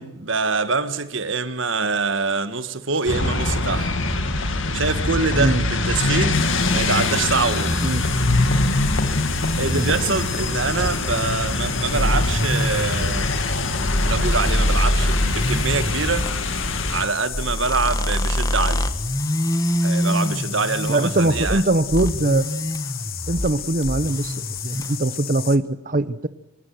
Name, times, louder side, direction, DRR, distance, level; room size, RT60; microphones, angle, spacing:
voice 1, 0.0-3.9 4.7-7.8 9.6-13.3 14.0-16.3 16.9-18.9 19.8-21.6, right 4 dB, 60° right, 1.6 m, -25 dB
sound 1, 3.1-17.0, left 2 dB, 65° left, 2.4 m, -23 dB
sound 2, 6.2-11.1 11.9-16.4 17.3-21.6 21.9-23.5 23.8-25.0, equal, 15° left, 1.3 m, -26 dB
sound 3, 6.3-25.6, left 11 dB, 45° left, 1.4 m, -35 dB
voice 2, 20.9-22.5 23.3-26.3, right 2 dB, 40° right, 0.9 m, -22 dB
26.0 x 17.0 x 9.4 m
head